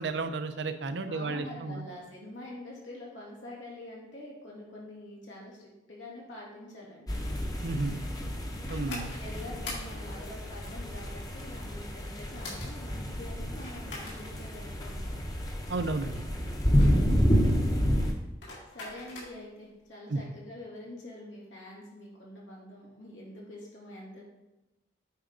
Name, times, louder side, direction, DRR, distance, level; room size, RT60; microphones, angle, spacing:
voice 1, 0.0-1.8 7.6-8.0 8.7-9.1 15.7-16.2 16.9-17.2 20.1-20.2, right 3 dB, 70° right, 9 dB, 0.6 m, -32 dB
voice 2, 1.1-7.2 8.8-15.1 18.7-24.2, left 1 dB, 90° left, -4 dB, 2.7 m, -45 dB
sound 1, 7.1-19.6, left 2 dB, 70° left, 2.6 m, -45 dB
sound 2, 7.1-18.1, equal, 20° left, 0.8 m, -29 dB
8.6 x 4.9 x 3.8 m, 0.99 s
head